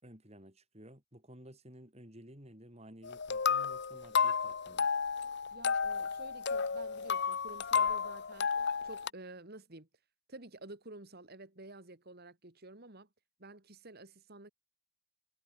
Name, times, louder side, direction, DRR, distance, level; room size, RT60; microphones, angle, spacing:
voice 1, 0.0-4.9, equal, 30° right, 5.2 m, -54 dB
sound 1, 3.0-9.1, left 6 dB, 50° left, 0.8 m, -32 dB
voice 2, 5.5-8.5 8.8-9.9 10.3-13.1 13.4-14.5, right 2 dB, 45° right, 2.2 m, -51 dB
head